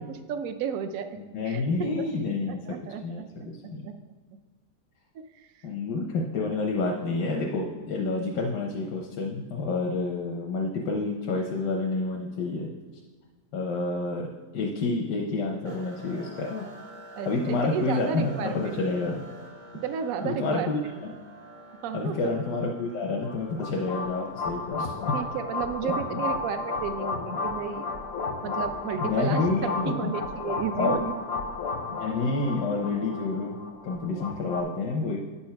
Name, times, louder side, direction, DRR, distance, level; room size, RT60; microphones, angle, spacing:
voice 1, 0.1-1.1 1.4-2.0 2.5-3.2 3.8-3.9 5.1-5.5 17.2-18.8 19.8-21.0 21.8-22.2 25.1-27.8 28.4-31.1, right 8 dB, 70° right, 8 dB, 0.9 m, -33 dB
voice 2, 1.2-3.9 5.6-12.7 13.5-14.3 14.5-16.7 17.3-19.3 20.2-20.8 21.9-25.1 29.0-30.1 30.8-31.0 32.0-33.6 33.8-35.2, left 3 dB, 85° left, 0 dB, 1.3 m, -29 dB
sound 1, 15.6-33.5, equal, 30° right, 0.7 m, -49 dB
sound 2, 23.2-34.6, left 3 dB, 60° left, 0.7 m, -33 dB
8.0 x 4.3 x 5.7 m, 1.4 s
omnidirectional pair, 1.8 m